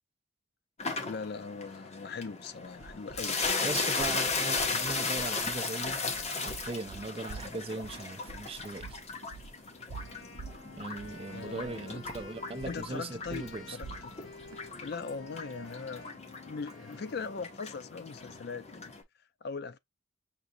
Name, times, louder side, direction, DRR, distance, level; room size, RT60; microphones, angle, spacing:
sound 1, 0.8-19.0, left 4 dB, 30° left, 0.9 m, -36 dB
voice 1, 1.1-3.7 11.3-12.0 12.6-14.1 14.8-18.9 19.4-19.8, left 5 dB, 50° left, 0.4 m, -40 dB
sound 2, 2.5-15.7, right 4 dB, 80° right, 0.5 m, -49 dB
voice 2, 3.6-6.0 6.3-9.0 10.7-13.8, right 3 dB, 25° right, 0.4 m, -39 dB
Wind instrument woodwind instrument, 9.9-18.0, left 3 dB, 80° left, 1.2 m, -51 dB
6.0 x 2.5 x 2.6 m
head